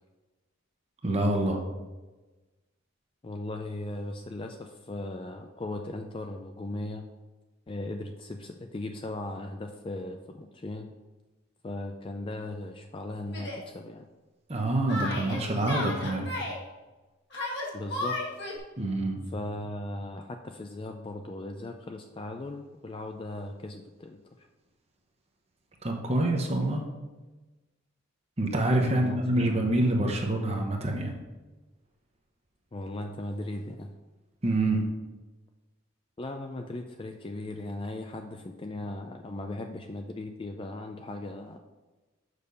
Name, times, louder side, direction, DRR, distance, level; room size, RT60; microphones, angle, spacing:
voice 1, 1.0-1.6 14.5-16.3 18.8-19.2 25.8-26.9 28.4-31.1 34.4-34.9, right 1 dB, 30° right, 2 dB, 0.9 m, -26 dB
voice 2, 3.2-7.1 7.7-10.9 11.6-14.1 17.7-18.2 19.3-24.5 28.9-29.7 32.7-33.9 36.2-41.6, left 2 dB, 25° left, 5 dB, 0.4 m, -38 dB
Yell, 13.3-13.6 14.9-16.6 17.3-18.6, left 1 dB, 55° left, 1.6 m, -34 dB
6.6 x 5.3 x 5.3 m, 1.2 s
head